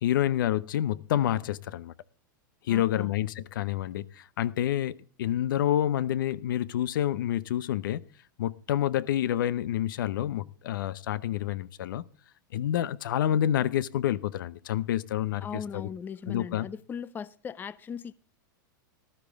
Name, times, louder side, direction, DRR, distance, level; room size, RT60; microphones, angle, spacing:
voice 1, 0.0-1.9 2.6-8.0 8.4-12.0 12.5-15.5 15.7-15.9 16.3-16.7, left 11 dB, 75° left, 0.7 m, -28 dB
voice 2, 2.7-3.1 15.4-18.1, left 6 dB, 20° left, 0.5 m, -38 dB
14.0 x 12.5 x 3.5 m
hypercardioid pair, 120°, 11 cm